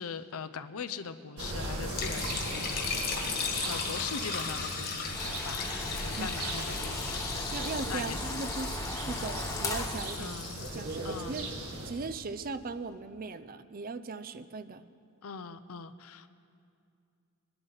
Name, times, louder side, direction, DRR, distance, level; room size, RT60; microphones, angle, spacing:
voice 1, 0.0-2.9 3.6-8.2 10.2-10.6 11.0-11.4 15.2-16.3, left 6 dB, 70° left, 11 dB, 0.6 m, -41 dB
sound 1, 1.4-11.9, right 2 dB, 85° right, 2.1 m, -38 dB
Liquid, 1.8-12.0, left 5 dB, 45° left, 1.8 m, -37 dB
sound 2, 5.1-10.2, left 2 dB, 15° left, 0.9 m, -39 dB
voice 2, 7.5-10.4 10.7-11.5 11.8-14.9, right 3 dB, 40° right, 13 dB, 0.5 m, -38 dB
23.0 x 11.5 x 4.0 m, 2.4 s
head